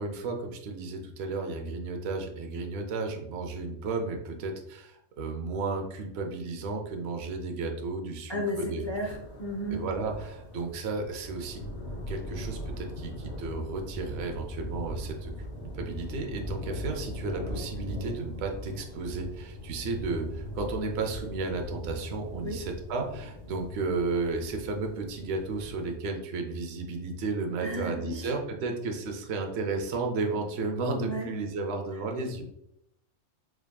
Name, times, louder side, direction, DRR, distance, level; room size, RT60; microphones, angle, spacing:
voice 1, 0.0-8.8 9.7-11.6 12.1-15.5 15.7-32.4, right 3 dB, 65° right, 3 dB, 0.8 m, -33 dB
voice 2, 8.3-9.8 22.4-22.6 27.6-28.3 31.0-31.3, equal, 40° left, -1 dB, 0.4 m, -33 dB
sound 1, 8.8-26.0, left 1 dB, 65° left, 2.0 m, -40 dB
4.7 x 3.5 x 2.3 m, 0.80 s
omnidirectional pair, 1.2 m